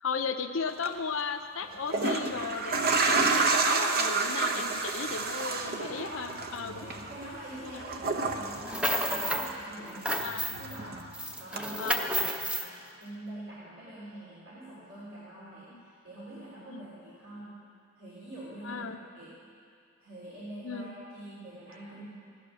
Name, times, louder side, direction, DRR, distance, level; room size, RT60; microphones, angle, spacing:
voice 1, 0.0-6.9 7.7-7.8 10.2-10.5 11.5-12.1 15.7-15.8 16.7-16.9 18.6-19.0 20.6-20.9, left 5 dB, 70° left, 7 dB, 0.8 m, -35 dB
sound 1, 0.7-0.9 1.7-9.8 10.1-11.1 11.6-11.7, right 3 dB, 50° right, 1.0 m, -30 dB
voice 2, 5.7-6.3 6.6-10.1 10.6-11.0 11.4-12.7 13.0-17.5 18.0-18.9 19.1-19.3 20.0-22.1, right 1 dB, 70° right, -8 dB, 3.5 m, -45 dB
sound 2, 8.5-9.5 9.8-10.8 11.1-12.7, equal, 5° right, 0.8 m, -31 dB
15.5 x 11.5 x 6.3 m, 2.3 s
head